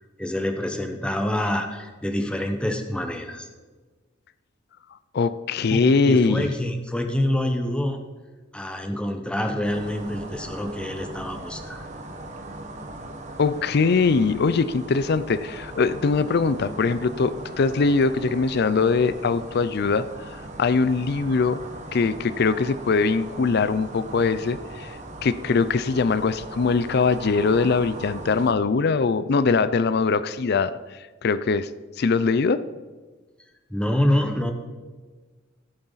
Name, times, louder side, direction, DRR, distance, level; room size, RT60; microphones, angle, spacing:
voice 1, 0.2-3.5 6.1-8.0 8.5-11.8 33.7-34.5, left 1 dB, 5° left, 5 dB, 1.0 m, -26 dB
voice 2, 5.1-6.5 13.4-20.1 20.6-21.6 21.9-25.0 25.2-30.8 31.2-31.7 32.0-32.6, left 4 dB, 55° left, 15 dB, 0.5 m, -22 dB
sound 1, 9.6-28.5, right 2 dB, 40° right, 1.4 m, -39 dB
15.5 x 8.8 x 4.1 m, 1.3 s
head